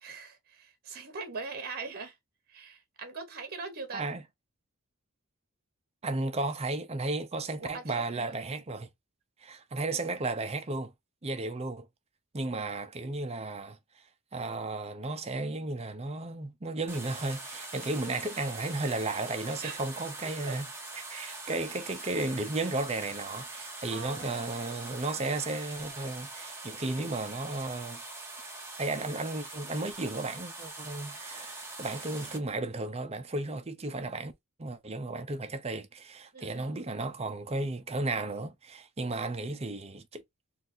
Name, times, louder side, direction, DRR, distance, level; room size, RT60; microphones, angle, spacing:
voice 1, 0.0-2.1 2.5-4.1 7.6-8.5 19.6-19.8 20.4-20.6 21.2-21.4 23.9-25.3 36.3-36.8, right 4 dB, 45° right, 1.1 m, -42 dB
voice 2, 3.9-4.2 6.0-8.9 9.4-10.9 11.2-11.9 12.3-13.8 14.3-20.7 20.9-28.0 28.8-34.3 34.6-40.2, right 2 dB, 30° right, 0.6 m, -34 dB
sound 1, 16.9-32.4, right 2 dB, 10° right, 1.1 m, -43 dB
3.9 x 2.5 x 2.6 m
head